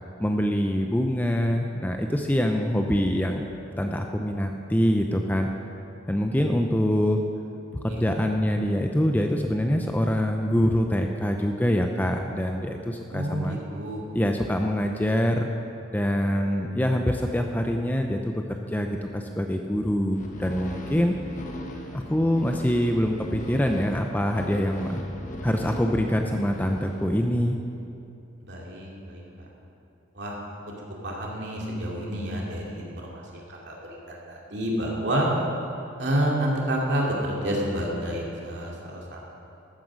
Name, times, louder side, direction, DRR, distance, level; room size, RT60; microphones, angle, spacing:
voice 1, 0.2-3.5 3.8-5.5 6.1-7.2 7.8-13.6 14.1-15.5 15.9-18.9 19.1-21.2 21.9-25.0 25.4-27.6, equal, 10° left, 3 dB, 0.5 m, -25 dB
voice 2, 7.9-8.3 13.1-14.0 28.5-29.2 30.1-30.4 31.0-33.7 34.1-35.3 36.0-39.2, right 1 dB, 55° right, -3 dB, 2.6 m, -29 dB
sound 1, 20.1-27.5, left 1 dB, 35° left, 1.1 m, -39 dB
14.0 x 9.2 x 6.3 m, 2.8 s
head